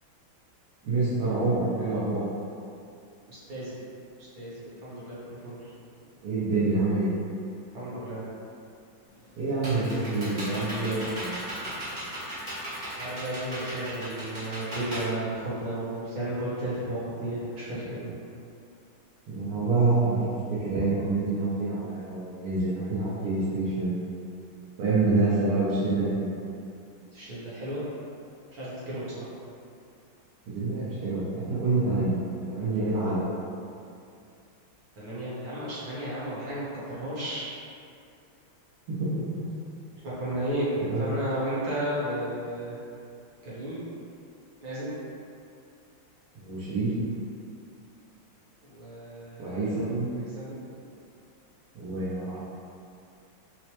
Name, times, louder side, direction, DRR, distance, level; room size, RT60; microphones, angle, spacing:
voice 1, 0.8-2.2 6.2-7.1 9.4-11.4 19.3-24.0 24.8-26.3 30.5-32.2 32.5-33.3 38.9-39.5 40.9-41.0 46.4-46.9 49.4-50.1 51.8-52.4, right 3 dB, 90° right, -12 dB, 1.7 m, -27 dB
voice 2, 3.3-3.8 4.4-5.7 7.7-8.2 13.0-18.2 27.1-27.8 28.5-29.3 35.0-37.4 40.2-42.8 43.4-43.8 44.6-45.0 48.6-49.8 50.1-50.8, right 1 dB, 55° right, -9 dB, 1.1 m, -33 dB
Computer keyboard, 9.1-16.0, equal, 35° right, 0.7 m, -37 dB
4.4 x 2.0 x 2.9 m, 2.5 s
omnidirectional pair, 2.4 m